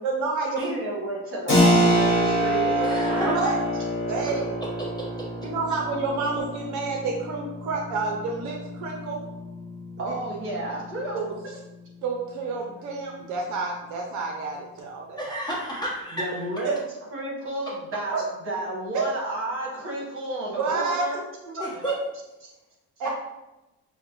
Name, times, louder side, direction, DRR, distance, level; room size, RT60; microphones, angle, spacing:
voice 1, 0.0-0.7 1.6-1.7 3.3-3.6 4.1-4.4 5.4-9.2 10.1-10.2 11.1-11.2 12.0-15.2 16.6-16.7 18.1-18.2 18.9-19.0 20.6-21.1 23.0-23.1, right 4 dB, 60° right, 1 dB, 0.6 m, -29 dB
voice 2, 0.6-3.4 10.0-11.6 16.1-16.7 17.1-21.9 22.4-22.5, right 1 dB, 40° right, -3 dB, 1.3 m, -32 dB
Keyboard (musical), 1.5-11.8, equal, 35° left, 1.2 m, -27 dB
voice 3, 2.8-3.5 4.8-4.9 15.2-16.3 21.6-21.9 23.0-23.1, right 1 dB, 15° left, -5 dB, 0.9 m, -31 dB
5.0 x 2.1 x 2.9 m, 1.0 s
cardioid pair, 145°, 33 cm